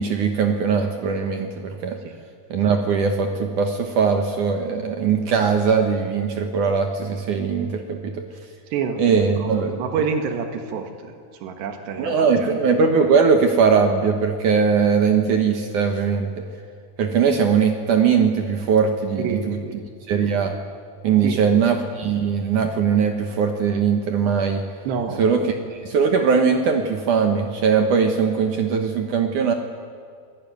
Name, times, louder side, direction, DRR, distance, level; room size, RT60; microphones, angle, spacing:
voice 1, 0.0-2.0 2.5-8.2 9.0-9.7 12.0-16.3 17.0-19.6 20.1-20.5 21.0-24.6 25.2-25.4 25.7-29.5, right 6 dB, 60° right, 5 dB, 2.4 m, -20 dB
voice 2, 8.7-11.1 11.4-12.6 19.2-19.8 21.2-21.7 24.8-25.5, right 6 dB, 85° right, 5 dB, 3.9 m, -28 dB
27.0 x 17.5 x 9.6 m, 2.1 s
omnidirectional pair, 4.8 m